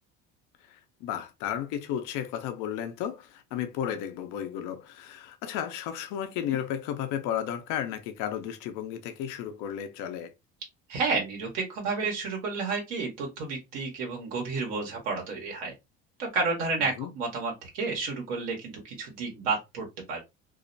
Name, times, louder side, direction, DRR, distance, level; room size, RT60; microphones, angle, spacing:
voice 1, 0.7-10.3 16.8-17.1, left 10 dB, 70° left, 0.6 m, -33 dB
voice 2, 10.9-15.7 16.2-20.2, right 4 dB, 85° right, 1.0 m, -31 dB
2.4 x 2.1 x 2.5 m
supercardioid pair, 90°, 31 cm